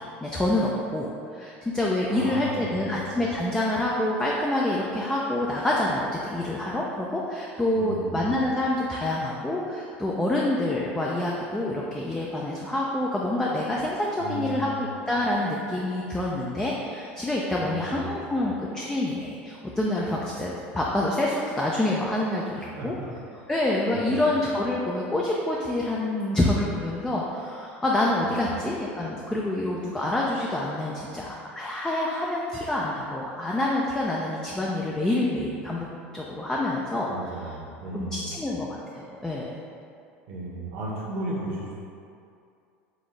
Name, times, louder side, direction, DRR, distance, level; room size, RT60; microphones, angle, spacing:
voice 1, 0.2-22.9 23.5-35.9 36.1-37.1 37.9-39.5, left 1 dB, 10° left, -4 dB, 0.5 m, -27 dB
voice 2, 2.1-2.9 7.7-8.2 14.2-14.8 17.6-18.1 22.6-23.1 23.9-24.3 28.2-28.6 37.0-38.3 40.3-41.7, right 1 dB, 65° right, -5 dB, 1.1 m, -35 dB
4.1 x 3.4 x 3.2 m, 2.5 s
hypercardioid pair, 85°, 6 cm